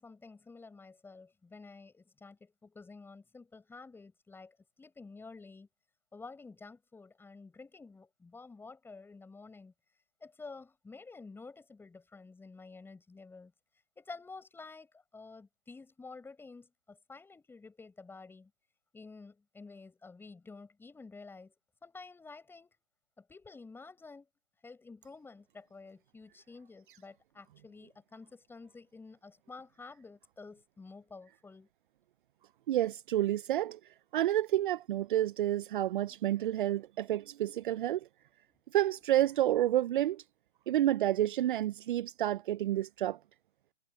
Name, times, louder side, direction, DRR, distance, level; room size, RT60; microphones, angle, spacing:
voice 1, 0.0-5.7 6.1-9.7 10.2-13.5 14.0-18.5 18.9-21.5 21.8-22.7 23.2-24.3 24.6-31.7, left 4 dB, 5° left, 6.5 m, -51 dB
voice 2, 32.7-33.8 34.1-38.0 38.7-40.2 40.7-43.2, right 13 dB, 55° right, 0.6 m, -29 dB
hypercardioid pair, 140°, 30 cm